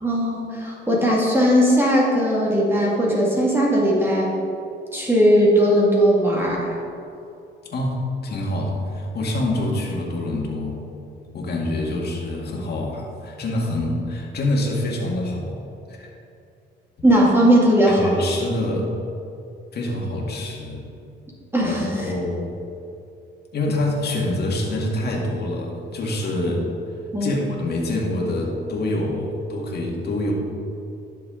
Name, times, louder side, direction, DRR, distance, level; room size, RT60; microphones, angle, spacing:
voice 1, 0.0-4.3 4.9-6.8 17.0-18.3 21.5-22.1 27.1-27.4, equal, 10° right, -5 dB, 2.0 m, -18 dB
voice 2, 7.7-10.8 11.3-15.6 15.9-16.1 17.9-18.9 19.7-20.8 21.6-22.5 23.5-26.6 27.2-30.3, left 1 dB, 55° left, -2 dB, 1.9 m, -26 dB
11.5 x 6.8 x 3.8 m, 2.7 s
cardioid pair, 90°, 20 cm